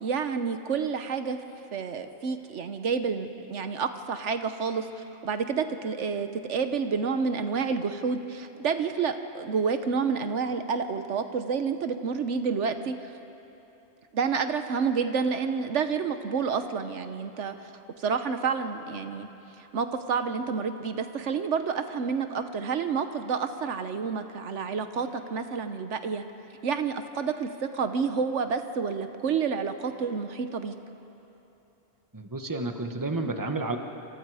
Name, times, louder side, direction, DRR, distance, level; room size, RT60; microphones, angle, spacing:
voice 1, 0.0-1.4 1.7-13.1 14.1-17.7 18.0-19.3 19.7-26.2 26.6-30.7, right 5 dB, 70° right, 8 dB, 1.2 m, -29 dB
voice 2, 32.1-33.8, right 2 dB, 15° right, 5 dB, 1.2 m, -31 dB
27.5 x 26.0 x 4.9 m, 3.0 s
omnidirectional pair, 1.3 m